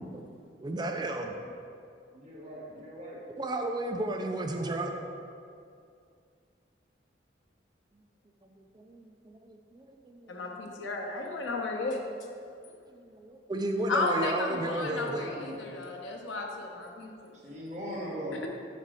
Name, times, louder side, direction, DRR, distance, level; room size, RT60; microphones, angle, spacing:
voice 1, 0.6-1.4 3.4-4.9 8.6-10.5 12.9-15.3, right 2 dB, 20° right, 3 dB, 0.3 m, -33 dB
voice 2, 2.1-3.2 4.5-5.0 14.8-15.7 17.4-18.4, equal, 40° right, -6 dB, 1.3 m, -41 dB
voice 3, 10.3-12.0 13.9-17.3, left 3 dB, 90° left, 1 dB, 0.7 m, -33 dB
5.0 x 4.2 x 4.8 m, 2.4 s
head